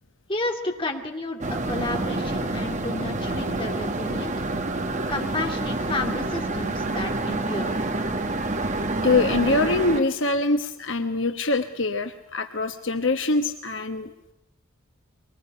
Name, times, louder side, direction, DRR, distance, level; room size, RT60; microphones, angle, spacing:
voice 1, 0.3-4.3 5.1-7.9, left 2 dB, 25° left, 2 dB, 2.6 m, -31 dB
sound 1, 1.4-10.0, right 2 dB, 35° right, 1.5 m, -28 dB
voice 2, 9.0-14.3, left 3 dB, 60° left, 7 dB, 1.1 m, -24 dB
23.0 x 20.0 x 9.9 m, 0.89 s
head